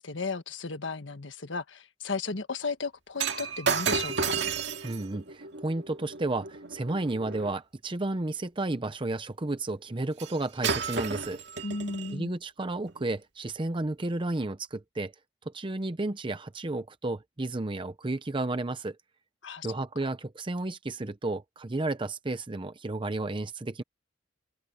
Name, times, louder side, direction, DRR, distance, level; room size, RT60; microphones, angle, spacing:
voice 1, 0.0-4.4 11.6-12.3 19.4-19.7 20.0-20.1, left 4 dB, 75° left, 1.5 m, -35 dB
Shatter, 3.2-7.6 10.2-10.4 10.6-12.1 12.9-13.0, right 5 dB, 65° right, 2.2 m, -32 dB
voice 2, 4.8-11.4 12.1-15.1 15.5-19.0 19.6-23.8, right 2 dB, 25° right, 0.7 m, -32 dB
open air
head